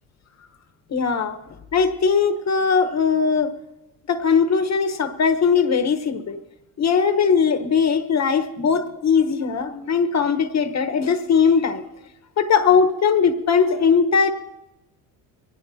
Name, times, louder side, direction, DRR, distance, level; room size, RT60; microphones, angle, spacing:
voice 1, 0.9-1.4 1.7-3.5 4.1-6.4 6.8-11.8 12.4-14.3, left 6 dB, 40° left, 8 dB, 1.2 m, -19 dB
23.0 x 17.5 x 2.8 m, 0.98 s
supercardioid pair, 85°, 42 cm